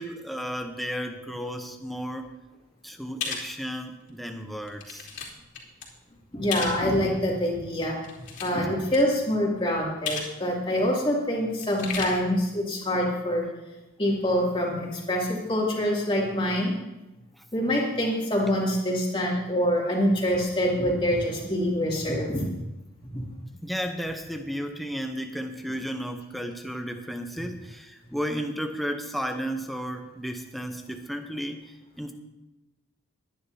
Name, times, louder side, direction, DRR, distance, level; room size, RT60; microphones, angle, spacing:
voice 1, 0.0-2.3 2.8-5.1 23.6-31.6 32.0-32.1, equal, ahead, 4 dB, 0.7 m, -33 dB
sound 1, 3.2-3.5 4.1-4.2 4.7-5.3 5.5-5.8 6.5-6.8 7.9-8.7 8.9-9.0 10.1-10.3 10.6-10.7 11.6-12.0, left 6 dB, 60° left, 2.9 m, -33 dB
voice 2, 6.3-8.0 8.4-13.4 14.0-16.8 17.5-22.4 23.1-23.2, equal, 25° left, -3 dB, 2.6 m, -25 dB
22.0 x 10.0 x 2.8 m, 1.0 s
head